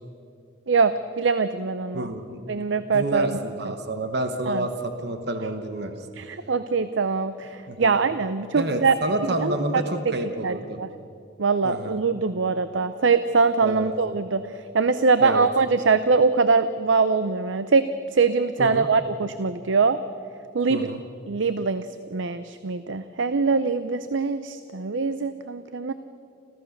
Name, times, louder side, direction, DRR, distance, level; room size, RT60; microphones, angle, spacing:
voice 1, 0.7-2.1 2.5-3.4 3.6-3.7 4.5-4.7 6.2-8.9 9.2-9.8 10.4-10.9 11.4-14.4 14.7-20.0 20.5-20.9 21.3-21.9 22.1-25.9, right 4 dB, 75° right, 12 dB, 0.6 m, -23 dB
voice 2, 1.9-2.6 2.9-5.9 7.7-7.9 8.5-10.8 11.6-12.0 13.6-13.9 15.2-15.5 18.6-18.9 20.7-21.0, right 1 dB, 55° right, 6 dB, 1.3 m, -29 dB
30.0 x 14.5 x 6.6 m, 2.6 s
head